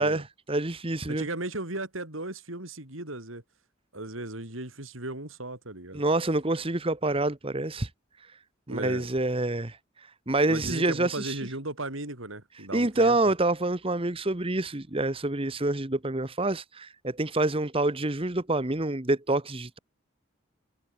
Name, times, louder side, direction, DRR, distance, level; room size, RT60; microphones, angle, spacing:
voice 1, 0.0-1.3 5.9-7.9 8.7-9.8 10.3-11.4 12.7-19.8, right 2 dB, 25° right, 1.3 m, -27 dB
voice 2, 1.1-3.4 3.9-6.0 8.7-9.1 10.5-13.2, right 2 dB, 80° right, 5.4 m, -36 dB
head